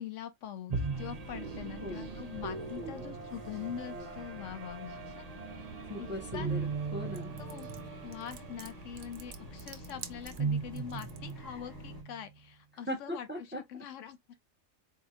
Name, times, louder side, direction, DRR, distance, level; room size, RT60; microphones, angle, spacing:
voice 1, 0.0-5.2 6.0-6.5 7.4-7.7 8.0-14.2, left 9 dB, 75° left, 0.9 m, -43 dB
sound 1, 0.7-12.3, right 5 dB, 70° right, 0.3 m, -39 dB
sound 2, 0.9-12.0, left 1 dB, 20° left, 1.1 m, -48 dB
voice 2, 1.8-2.2 2.8-3.2 3.9-4.2 5.9-6.7 6.9-7.4 12.9-13.6, left 1 dB, 10° right, 0.6 m, -39 dB
sound 3, 7.1-11.3, right 9 dB, 90° right, 1.0 m, -49 dB
4.0 x 2.8 x 2.4 m
omnidirectional pair, 1.3 m